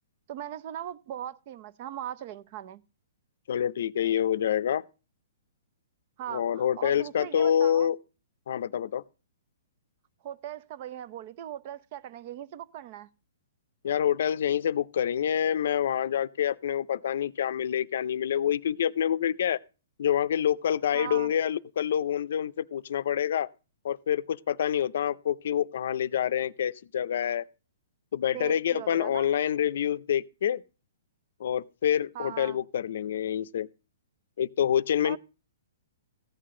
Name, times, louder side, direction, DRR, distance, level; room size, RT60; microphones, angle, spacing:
voice 1, 0.3-2.8 6.2-7.9 10.2-13.1 20.9-21.3 28.3-29.3 32.1-32.6 35.0-35.2, right 11 dB, 35° right, 0.5 m, -39 dB
voice 2, 3.5-4.8 6.3-8.0 8.5-9.0 13.8-19.6 20.0-23.5 23.8-27.4 28.1-30.6 31.4-33.7 34.4-35.2, left 9 dB, 60° left, 0.5 m, -27 dB
14.5 x 8.6 x 3.7 m
hypercardioid pair, 165°, 0 cm